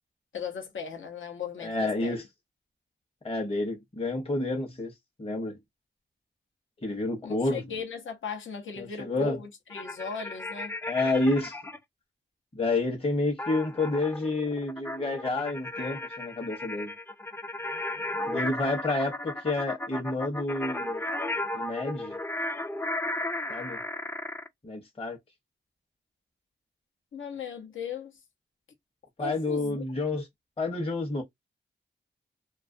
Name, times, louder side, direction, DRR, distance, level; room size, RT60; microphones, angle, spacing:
voice 1, 0.3-2.2 7.2-10.7 27.1-28.1 29.2-29.8, left 6 dB, 85° left, 0.7 m, -37 dB
voice 2, 1.6-2.2 3.2-4.9 5.2-5.6 6.8-7.6 8.8-9.4 10.9-11.6 12.5-16.9 18.3-21.0 21.5-22.2 23.5-23.8 24.6-25.2 29.2-30.3 30.6-31.2, left 2 dB, 30° left, 0.8 m, -29 dB
sound 1, 9.7-11.8 13.4-24.5, left 2 dB, 10° left, 0.3 m, -35 dB
2.3 x 2.2 x 2.5 m
cardioid pair, 55°, 20 cm